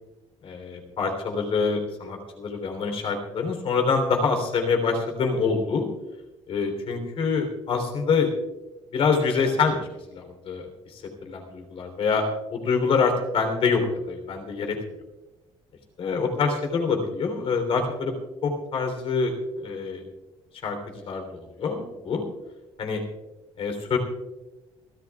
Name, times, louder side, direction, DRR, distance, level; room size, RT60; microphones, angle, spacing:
voice 1, 0.4-5.9 6.5-8.3 8.9-9.8 10.1-12.2 12.5-14.8 16.0-18.1 18.4-20.0 20.6-20.8 21.0-21.3 21.6-22.2 22.8-23.0 23.6-24.0, left 5 dB, 55° left, 4 dB, 3.4 m, -25 dB
28.5 x 13.5 x 2.4 m, 1.1 s
cardioid pair, 160°, 11 cm